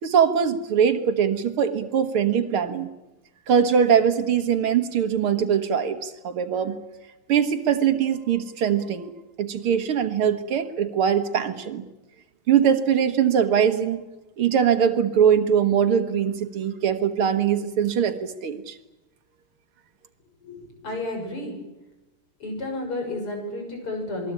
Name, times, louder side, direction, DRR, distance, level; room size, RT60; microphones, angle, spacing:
voice 1, 0.0-2.9 3.5-6.8 7.3-9.1 9.4-11.8 12.5-14.0 14.4-18.8, right 8 dB, 80° right, 9 dB, 2.3 m, -22 dB
voice 2, 20.4-21.6 22.4-24.3, left 2 dB, 90° left, 3 dB, 7.3 m, -31 dB
28.0 x 21.0 x 8.8 m, 1.0 s
omnidirectional pair, 2.4 m